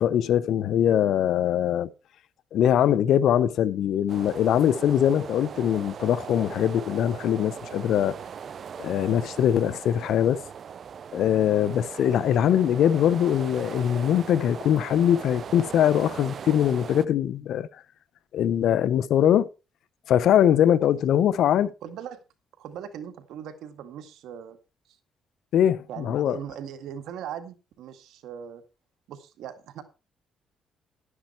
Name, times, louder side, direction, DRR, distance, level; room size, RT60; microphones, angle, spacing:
voice 1, 0.0-1.9 2.5-8.1 8.8-10.4 11.1-17.7 18.3-19.5 20.1-21.7 25.5-26.4, left 10 dB, 75° left, 0.7 m, -22 dB
sound 1, 4.1-17.1, right 7 dB, 55° right, 0.6 m, -39 dB
voice 2, 21.8-22.2 22.6-24.6 25.9-28.6 29.1-29.8, right 9 dB, 85° right, 2.0 m, -39 dB
11.5 x 9.8 x 4.5 m
cardioid pair, 90°, 0 cm